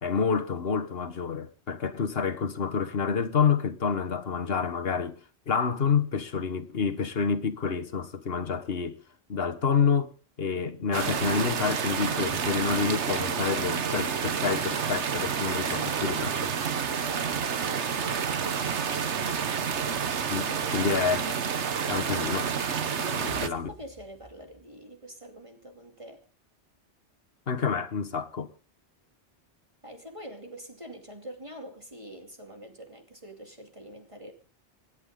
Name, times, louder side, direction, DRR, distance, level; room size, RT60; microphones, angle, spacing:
voice 1, 0.0-5.2 5.5-9.0 9.3-10.1 10.4-16.5 20.3-21.4 21.9-22.5 23.2-23.7 27.5-28.5, left 6 dB, 60° left, 1.5 m, -28 dB
sound 1, 10.9-23.5, right 7 dB, 85° right, 1.4 m, -29 dB
voice 2, 15.6-19.4 20.4-20.8 23.0-26.3 29.8-34.3, right 1 dB, 30° right, 2.7 m, -46 dB
sound 2, 23.3-25.1, right 3 dB, 45° right, 2.9 m, -51 dB
27.0 x 11.0 x 3.7 m
omnidirectional pair, 1.1 m